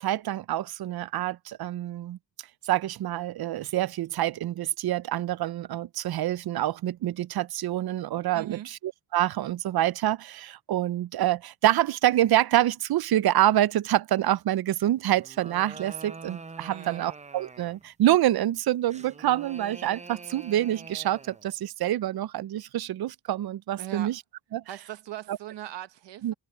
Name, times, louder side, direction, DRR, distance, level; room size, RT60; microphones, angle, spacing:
voice 1, 0.0-2.2 2.6-24.2 24.5-24.6 25.3-25.4 26.2-26.3, right 13 dB, 60° right, 0.5 m, -26 dB
voice 2, 8.3-8.7 16.7-17.0 23.8-24.1 24.7-26.3, right 13 dB, 85° right, 1.0 m, -39 dB
sound 1, 15.1-17.9 18.9-21.5, right 4 dB, 15° right, 0.6 m, -45 dB
cardioid pair, 100°, 42 cm